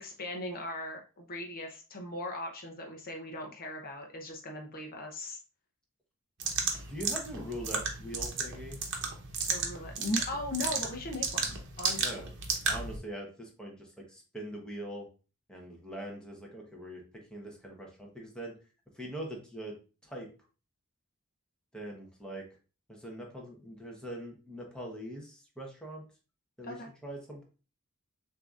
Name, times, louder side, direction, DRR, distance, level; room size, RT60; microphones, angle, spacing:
voice 1, 0.0-5.4 9.5-12.2 26.6-26.9, left 1 dB, 45° left, 2 dB, 0.7 m, -38 dB
sound 1, 6.4-13.0, right 5 dB, 60° right, 0.9 m, -34 dB
voice 2, 6.9-8.8 12.0-12.3 12.6-15.1 15.5-17.0 17.3-18.5 18.9-19.7 20.0-20.3 21.7-22.4 22.9-26.0 26.6-26.8 27.0-27.4, right 1 dB, 5° left, -1 dB, 1.0 m, -42 dB
6.5 x 2.7 x 2.4 m, 0.34 s
head